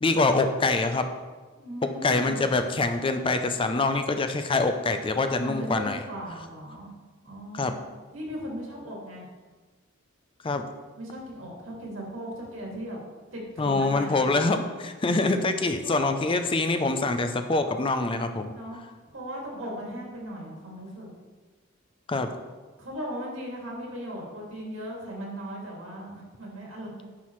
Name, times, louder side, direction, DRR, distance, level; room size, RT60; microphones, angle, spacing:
voice 1, 0.0-1.1 2.0-6.0 7.5-7.7 10.4-10.6 13.6-18.5 22.1-22.3, left 3 dB, 25° left, 7 dB, 0.5 m, -25 dB
voice 2, 1.6-2.4 5.4-6.9 7.2-7.8 8.1-9.3 11.0-13.0 13.3-14.3 15.8-16.1 18.5-18.8 19.1-21.1 22.8-27.0, equal, 85° right, -3 dB, 2.2 m, -37 dB
9.8 x 5.8 x 3.1 m, 1.3 s
head